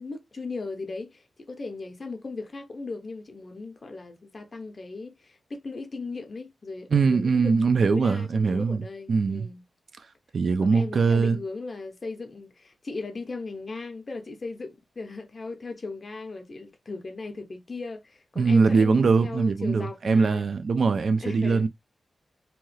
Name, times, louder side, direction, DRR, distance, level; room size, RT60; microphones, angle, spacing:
voice 1, 0.0-7.5 7.9-9.6 10.6-20.5 21.2-21.7, left 3 dB, 45° left, 0.6 m, -37 dB
voice 2, 6.9-8.8 9.1-9.5 10.3-11.4 18.4-21.7, right 4 dB, 60° right, 0.4 m, -22 dB
2.8 x 2.3 x 3.1 m
wide cardioid pair, 105°, 0 cm